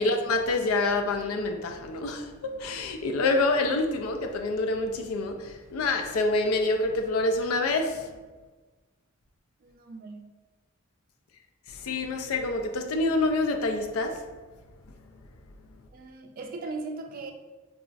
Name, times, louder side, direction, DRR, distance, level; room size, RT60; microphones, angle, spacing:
voice 1, 0.0-8.1 11.7-14.2, left 2 dB, 85° left, 0.4 m, -27 dB
voice 2, 9.6-10.2 15.9-17.3, right 3 dB, 45° right, 0.3 m, -38 dB
3.0 x 2.4 x 2.4 m
head